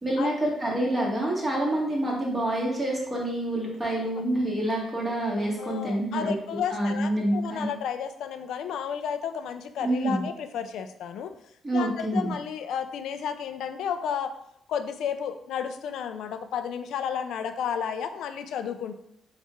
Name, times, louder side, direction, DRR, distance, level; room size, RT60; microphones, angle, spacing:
voice 1, 0.0-6.3 6.7-7.7 9.8-10.2 11.6-12.3, right 1 dB, 20° right, -4 dB, 1.6 m, -27 dB
voice 2, 5.6-11.3 11.7-14.3 14.7-18.9, left 8 dB, 75° left, 9 dB, 0.4 m, -32 dB
4.2 x 2.4 x 4.5 m, 0.74 s
cardioid pair, 90°, 0 cm